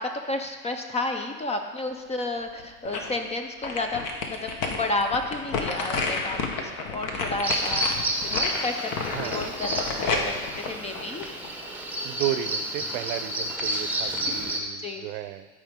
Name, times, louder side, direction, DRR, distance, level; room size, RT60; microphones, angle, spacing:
voice 1, 0.0-9.7 9.9-10.1 10.7-11.4 14.8-15.0, left 2 dB, 15° left, 6 dB, 0.5 m, -31 dB
sound 1, 2.4-3.2 3.6-11.7 12.1-12.2, left 4 dB, 50° left, 1.3 m, -30 dB
Bird vocalization bird call bird song, 7.4-14.6, right 1 dB, 5° right, 1.0 m, -30 dB
voice 2, 12.0-15.5, right 13 dB, 60° right, 11 dB, 0.7 m, -33 dB
13.0 x 4.9 x 3.6 m, 1.4 s
supercardioid pair, 110°, 42 cm